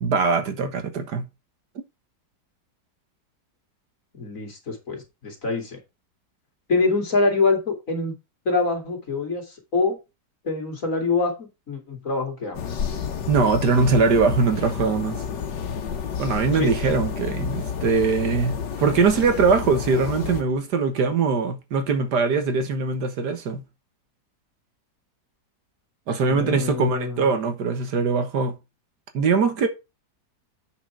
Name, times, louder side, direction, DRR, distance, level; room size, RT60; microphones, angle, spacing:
voice 1, 0.0-1.2 13.3-15.2 16.2-23.6 26.1-28.5 29.1-29.7, right 4 dB, 70° right, 1.8 m, -22 dB
voice 2, 4.1-5.8 6.7-8.1 8.4-10.0 10.4-13.1 16.5-16.7 26.2-27.3, left 3 dB, 50° left, 3.2 m, -25 dB
sound 1, 12.5-20.4, left 7 dB, 90° left, 1.8 m, -30 dB
8.1 x 6.4 x 4.6 m
omnidirectional pair, 1.8 m